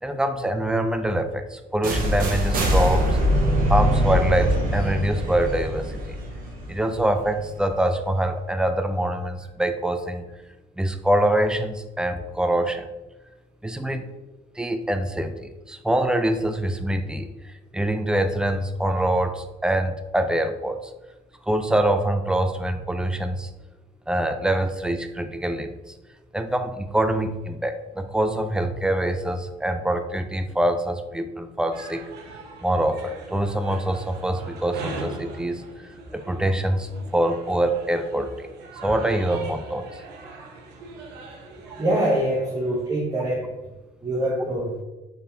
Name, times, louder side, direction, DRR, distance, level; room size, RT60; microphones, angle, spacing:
voice 1, 0.0-3.2 3.7-6.2 6.7-10.3 10.8-12.9 13.6-14.1 14.6-20.9 21.4-23.5 24.1-25.7 26.3-32.0 32.6-35.6 36.1-38.5 38.8-40.0, right 1 dB, 5° right, 8 dB, 0.3 m, -24 dB
sound 1, 1.8-7.7, equal, 60° right, 0.9 m, -23 dB
sound 2, 31.7-42.9, right 2 dB, 80° right, 0.7 m, -41 dB
voice 2, 41.8-43.5 44.0-44.7, right 1 dB, 20° right, -4 dB, 0.9 m, -24 dB
4.0 x 3.6 x 2.7 m, 1.1 s
cardioid pair, 110°, 17 cm